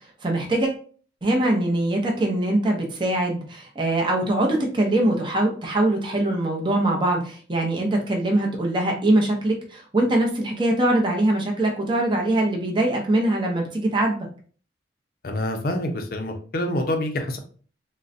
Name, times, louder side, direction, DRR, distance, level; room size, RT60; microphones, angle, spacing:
voice 1, 0.2-0.7 1.2-14.2, right 1 dB, 25° right, 0 dB, 0.6 m, -22 dB
voice 2, 15.2-17.4, left 1 dB, 50° left, 5 dB, 0.5 m, -26 dB
3.8 x 2.1 x 2.5 m, 0.42 s
head